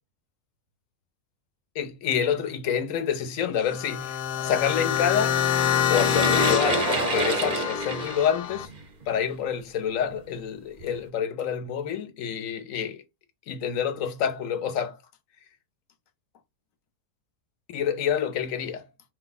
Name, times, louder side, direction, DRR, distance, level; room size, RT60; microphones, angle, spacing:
voice 1, 1.8-5.4 5.9-8.7 9.1-13.0 13.5-15.0 17.7-18.9, left 8 dB, 65° left, 1.0 m, -28 dB
sound 1, 3.6-8.7, left 9 dB, 90° left, 1.2 m, -26 dB
sound 2, 5.9-9.2 10.1-10.2 10.8-10.9, right 4 dB, 50° right, 0.5 m, -28 dB
4.5 x 2.2 x 3.9 m
omnidirectional pair, 1.7 m